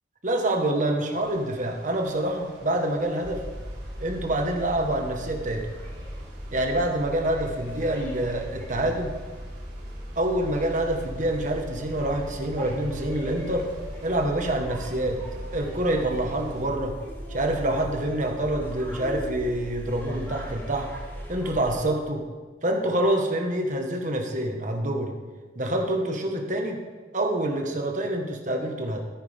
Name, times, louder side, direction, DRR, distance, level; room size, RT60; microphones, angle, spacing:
voice 1, 0.2-3.4 4.0-5.7 6.5-9.1 10.1-13.7 14.0-15.2 15.5-16.9 17.3-20.9 21.3-22.2 22.6-25.1 25.5-26.8 27.1-29.0, right 1 dB, 45° right, 3 dB, 1.4 m, -26 dB
sound 1, 1.2-16.6, right 1 dB, 70° right, 3.6 m, -47 dB
sound 2, 3.2-21.8, equal, 10° left, 3.0 m, -38 dB
14.0 x 9.5 x 3.6 m, 1.4 s
head